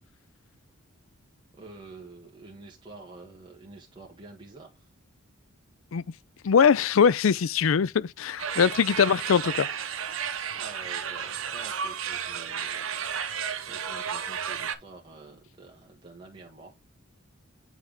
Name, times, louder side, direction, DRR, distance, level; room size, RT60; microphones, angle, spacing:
voice 1, 1.6-4.9 7.4-7.5 8.4-8.9 10.5-12.9 13.4-16.7, right 3 dB, 20° right, 1.6 m, -48 dB
voice 2, 6.4-9.7, left 6 dB, 75° left, 0.4 m, -22 dB
sound 1, 8.4-14.7, right 7 dB, 75° right, 0.9 m, -33 dB
9.1 x 3.6 x 3.6 m
head